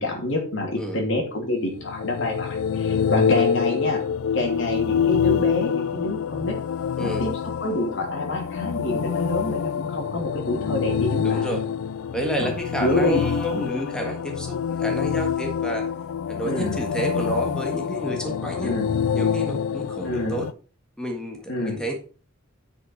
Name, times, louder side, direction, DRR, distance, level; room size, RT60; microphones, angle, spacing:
voice 1, 0.0-4.0 4.3-6.6 7.0-7.3 7.6-11.5 12.4-12.5 12.8-13.2 16.4-16.8 18.6-18.9 20.0-20.4 21.5-21.8, left 1 dB, 65° left, 1 dB, 2.8 m, -27 dB
sound 1, 1.7-20.5, left 7 dB, 85° left, 0.4 m, -26 dB
voice 2, 7.0-7.3 11.2-11.7 12.1-15.9 16.3-18.7 19.1-20.5 21.0-21.9, equal, 5° left, 1 dB, 1.6 m, -30 dB
9.6 x 5.6 x 4.6 m, 0.37 s
head